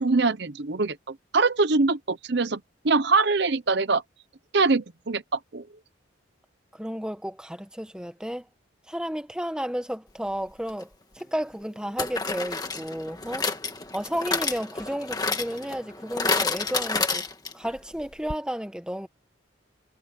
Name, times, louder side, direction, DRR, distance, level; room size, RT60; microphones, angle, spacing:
voice 1, 0.0-4.0 4.5-5.7, right 3 dB, 55° right, 0.8 m, -23 dB
voice 2, 6.7-8.4 8.9-10.9 11.1-13.5 13.9-17.2 17.5-19.1, equal, 5° right, 1.2 m, -32 dB
sound 1, 10.7-10.8 12.0-17.7 18.0-18.1 18.3-18.4, left 4 dB, 20° left, 1.8 m, -29 dB
head